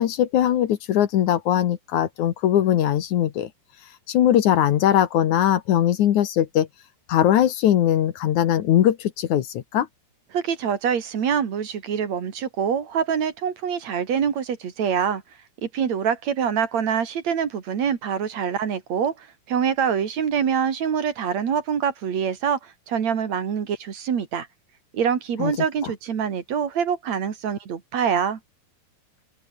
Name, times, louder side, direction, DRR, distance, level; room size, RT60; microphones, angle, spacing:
voice 1, 0.0-3.5 4.1-6.7 7.1-9.9 25.4-25.5, left 11 dB, 65° left, 2.4 m, -20 dB
voice 2, 10.3-15.2 15.7-24.5 24.9-28.4, right 7 dB, 50° right, 3.4 m, -25 dB
open air
omnidirectional pair, 4.1 m